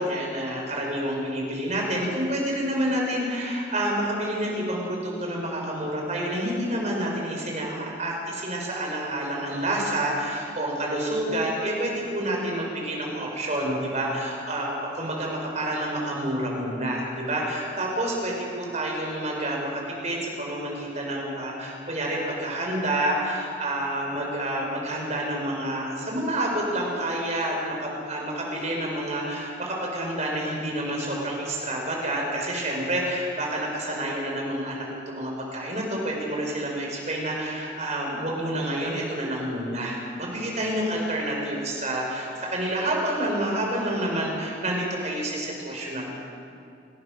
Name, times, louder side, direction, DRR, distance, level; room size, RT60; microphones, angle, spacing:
voice 1, 0.0-46.1, right 1 dB, 40° right, -1 dB, 5.3 m, -28 dB
27.5 x 17.5 x 6.7 m, 2.5 s
head